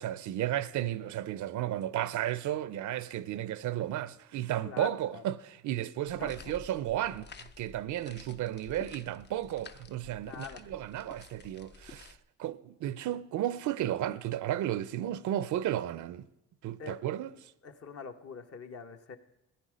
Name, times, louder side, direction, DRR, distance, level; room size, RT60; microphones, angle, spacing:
voice 1, 0.0-16.3 16.6-17.3, right 12 dB, 75° right, 0.6 m, -33 dB
voice 2, 4.6-5.2 6.2-6.5 10.2-10.6 16.8-17.0 17.6-19.2, left 6 dB, 50° left, 1.1 m, -44 dB
sound 1, 6.1-12.2, left 5 dB, 35° left, 0.6 m, -51 dB
15.5 x 9.8 x 5.1 m
cardioid pair, 90°, 30 cm